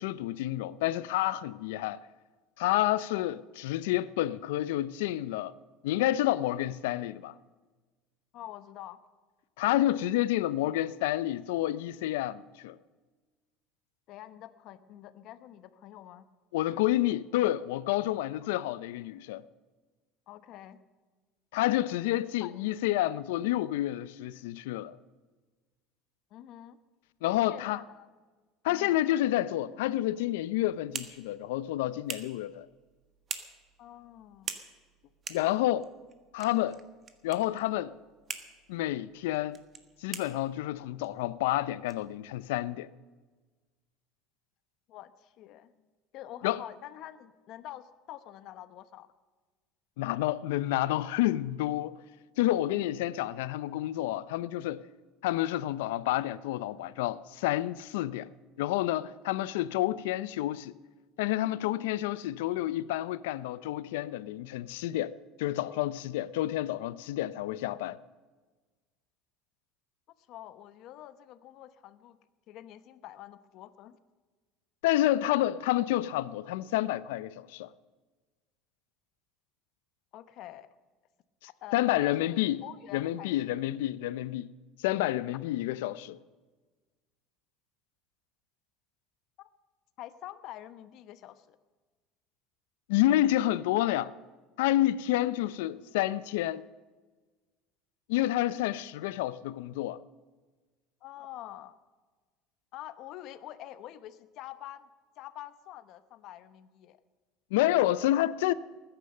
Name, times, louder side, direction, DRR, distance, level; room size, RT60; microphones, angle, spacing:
voice 1, 0.0-2.0 2.6-5.5 5.8-7.3 9.6-12.8 16.5-19.4 21.5-24.9 27.2-27.8 28.6-32.7 35.3-35.9 36.3-36.8 37.2-37.9 38.7-39.6 40.0-42.9 46.4-46.6 50.0-52.0 52.4-54.8 55.2-58.3 58.6-60.7 61.2-65.1 65.4-68.0 74.8-77.7 81.7-82.6 82.9-84.5 84.8-86.2 92.9-94.1 94.6-96.6 98.1-100.0 107.5-108.5, left 14 dB, 90° left, 0.5 m, -29 dB
voice 2, 8.3-9.0 14.1-16.2 18.4-18.5 20.3-20.8 22.4-22.5 26.3-26.8 27.5-28.1 28.7-29.0 33.8-34.5 35.0-35.6 44.9-45.7 46.1-49.1 70.2-72.2 72.5-74.0 80.1-80.7 81.4-83.8 90.0-91.6 101.0-101.7 102.7-104.9 105.2-107.0, left 13 dB, 60° left, 1.0 m, -46 dB
sound 1, 30.4-42.8, right 6 dB, 35° right, 1.5 m, -46 dB
20.0 x 10.0 x 6.7 m
supercardioid pair, 115°, 0 cm